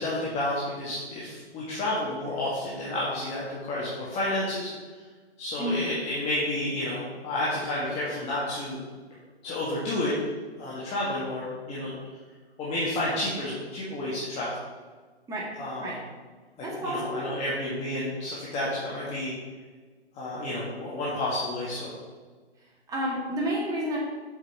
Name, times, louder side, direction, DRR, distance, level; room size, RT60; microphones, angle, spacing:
voice 1, 0.0-4.7 5.4-8.8 9.4-10.1 10.6-12.0 12.6-14.5 15.6-16.0 16.6-19.3 20.1-21.9, left 1 dB, 20° left, -7 dB, 1.7 m, -30 dB
voice 2, 16.6-17.3 22.9-24.0, equal, 10° right, -4 dB, 1.9 m, -30 dB
7.4 x 5.6 x 5.9 m, 1.4 s
hypercardioid pair, 140°, 33 cm